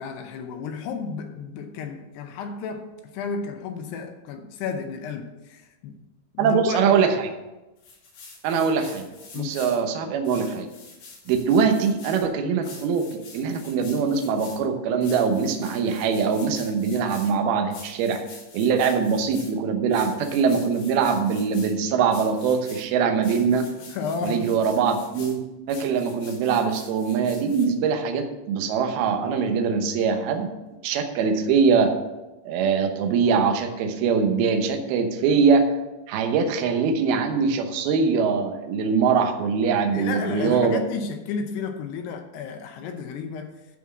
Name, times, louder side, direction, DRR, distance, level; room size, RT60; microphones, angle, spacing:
voice 1, 0.0-6.0 6.3-7.0 9.3-9.6 23.9-24.6 39.9-43.7, left 5 dB, 80° left, 2.6 m, -33 dB
voice 2, 6.4-7.3 8.4-9.1 9.3-10.7 11.3-13.1 13.3-18.2 18.5-23.7 24.2-25.4 25.7-30.5 30.8-31.9 32.5-35.7 36.1-40.8, right 5 dB, 70° right, 2.6 m, -22 dB
sound 1, 7.8-9.8 10.3-12.2 12.6-14.6 15.0-17.3 17.7-19.5 19.9-21.7 22.1-22.9 23.2-25.3 25.7-27.7, left 4 dB, 60° left, 4.0 m, -45 dB
12.5 x 4.4 x 7.2 m
omnidirectional pair, 5.3 m